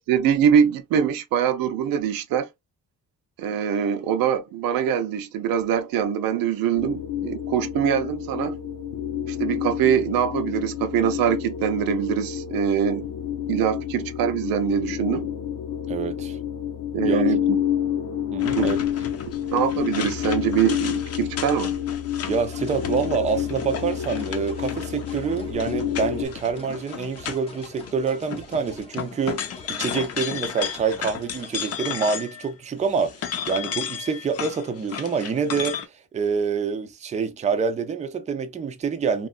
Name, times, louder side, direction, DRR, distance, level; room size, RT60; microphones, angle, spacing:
voice 1, 0.0-2.5 3.4-8.6 9.3-13.1 13.5-15.3 16.9-17.6 18.6-18.7 19.5-21.8, right 8 dB, 90° right, 0.7 m, -23 dB
sound 1, 6.8-26.3, left 10 dB, 85° left, 0.7 m, -29 dB
voice 2, 15.9-16.4 17.0-17.4 18.3-18.8 22.3-39.3, right 5 dB, 20° right, 0.4 m, -26 dB
sound 2, 18.4-27.9 28.2-32.5 32.8-35.9, left 8 dB, 45° left, 0.6 m, -34 dB
sound 3, 22.4-32.0, left 2 dB, 15° left, 0.8 m, -45 dB
3.0 x 2.4 x 2.4 m
cardioid pair, 140°, 34 cm